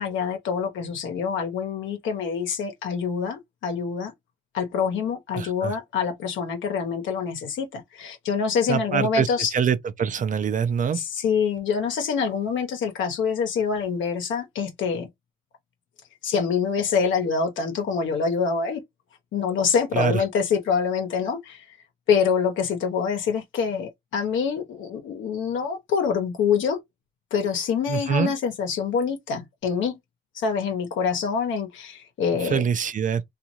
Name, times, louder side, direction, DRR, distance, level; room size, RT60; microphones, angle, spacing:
voice 1, 0.0-4.1 4.5-9.5 10.9-15.1 16.2-18.8 19.3-21.6 22.1-26.8 27.3-30.0 30.3-32.6, left 6 dB, 80° left, 0.9 m, -25 dB
voice 2, 5.4-5.8 8.7-11.0 19.9-20.2 27.9-28.3 32.4-33.2, right 7 dB, 40° right, 0.5 m, -24 dB
2.6 x 2.4 x 2.9 m
cardioid pair, 90°, 20 cm